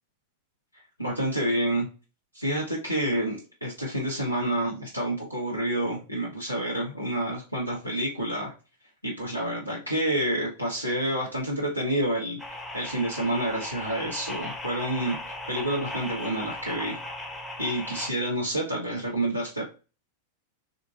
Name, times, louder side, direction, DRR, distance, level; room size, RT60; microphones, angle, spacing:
voice 1, 1.0-1.9 2.3-8.5 9.0-12.4 12.7-15.2 15.5-17.0 17.6-19.6, right 1 dB, 90° left, -4 dB, 0.7 m, -28 dB
sound 1, 12.4-18.1, left 1 dB, 10° left, 0.7 m, -37 dB
3.7 x 2.5 x 2.4 m, 0.32 s
figure-of-eight pair, 90°, 0 cm